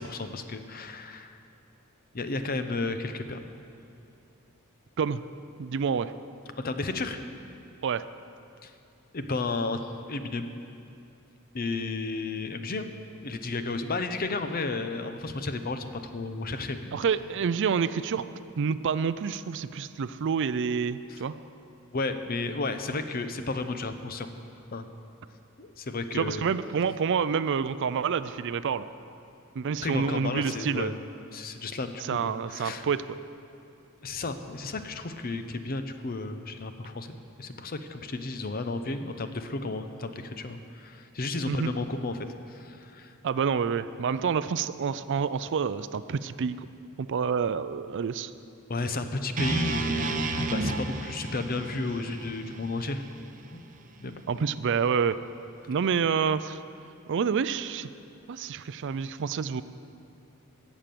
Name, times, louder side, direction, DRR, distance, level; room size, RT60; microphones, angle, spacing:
voice 1, 0.0-1.4 2.1-3.4 6.6-7.2 8.6-8.7 9.1-10.5 11.5-12.9 13.2-17.0 21.1-21.2 21.9-24.3 24.7-24.9 25.6-26.4 29.8-30.9 31.3-32.8 34.0-43.2 48.7-53.0 53.5-53.6 54.0-54.2, left 3 dB, 45° left, 8 dB, 0.7 m, -33 dB
voice 2, 5.6-6.1 7.8-8.0 16.9-18.3 18.6-21.3 26.1-28.8 29.6-31.0 32.0-33.2 41.5-41.7 43.2-46.7 47.0-48.3 54.3-55.2 55.7-56.6 57.1-57.9 58.3-59.6, right 6 dB, 55° right, 14 dB, 0.4 m, -28 dB
sound 1, 49.4-53.5, right 2 dB, 35° right, 0.8 m, -32 dB
16.5 x 7.3 x 6.8 m, 2.7 s
head